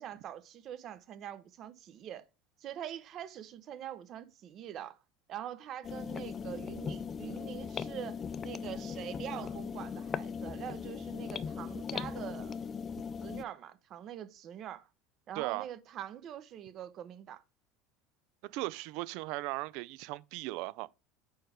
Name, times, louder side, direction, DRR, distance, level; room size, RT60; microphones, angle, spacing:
voice 1, 0.0-2.2 2.6-5.0 5.3-12.6 13.2-14.9 15.3-17.4, right 10 dB, 50° right, 0.8 m, -44 dB
sound 1, 5.8-13.4, left 6 dB, 35° left, 0.5 m, -39 dB
voice 2, 15.4-15.7 18.4-20.9, right 20 dB, 70° right, 0.4 m, -37 dB
4.7 x 4.5 x 4.9 m
hypercardioid pair, 85°, 0 cm